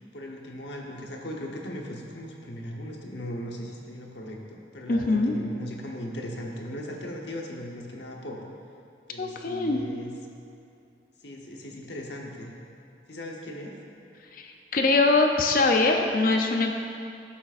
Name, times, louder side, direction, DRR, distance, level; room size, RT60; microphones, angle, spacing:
voice 1, 0.1-8.4 9.1-10.1 11.2-12.6 13.1-13.8, equal, 80° left, 0 dB, 1.0 m, -38 dB
voice 2, 4.9-5.4 9.2-9.8 14.3-16.7, left 3 dB, 50° left, 3 dB, 0.6 m, -23 dB
11.5 x 7.3 x 2.5 m, 2.5 s
head